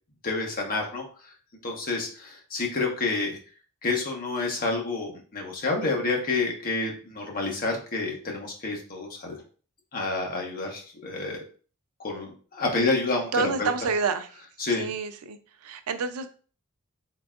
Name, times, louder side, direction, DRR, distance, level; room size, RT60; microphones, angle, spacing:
voice 1, 0.2-1.0 1.6-3.4 3.8-9.3 9.9-11.4 12.0-13.7 14.6-14.9, left 3 dB, 40° left, 0 dB, 1.0 m, -29 dB
voice 2, 13.3-14.3 14.8-15.4 15.6-16.3, right 4 dB, 80° right, 9 dB, 0.5 m, -28 dB
3.9 x 3.4 x 2.4 m, 0.39 s
head